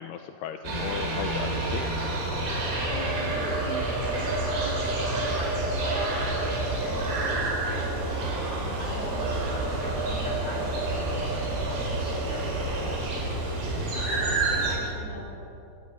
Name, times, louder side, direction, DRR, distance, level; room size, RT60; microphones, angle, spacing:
voice 1, 0.0-1.9 8.7-8.8, left 9 dB, 80° left, 7 dB, 2.7 m, -36 dB
sound 1, 0.6-14.8, right 2 dB, 80° right, 7.0 m, -28 dB
voice 2, 2.9-13.6 13.9-15.3, equal, 10° left, -3 dB, 6.5 m, -41 dB
24.5 x 17.0 x 9.1 m, 2.9 s
omnidirectional pair, 5.0 m